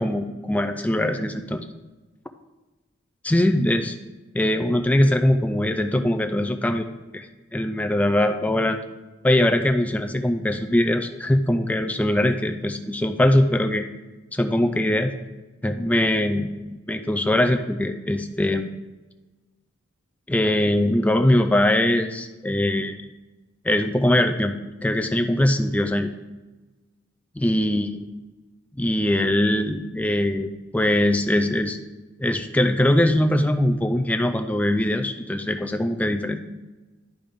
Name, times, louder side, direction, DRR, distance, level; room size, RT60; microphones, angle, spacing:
voice 1, 0.0-1.6 3.2-4.0 4.3-6.9 7.1-7.3 7.5-8.8 9.2-13.9 14.3-15.1 15.6-16.5 16.9-18.7 20.3-22.9 23.6-24.5 24.8-26.1 27.4-28.0 28.8-31.8 32.2-36.4, left 1 dB, 5° left, 7 dB, 0.3 m, -21 dB
10.5 x 5.1 x 3.5 m, 1.2 s
head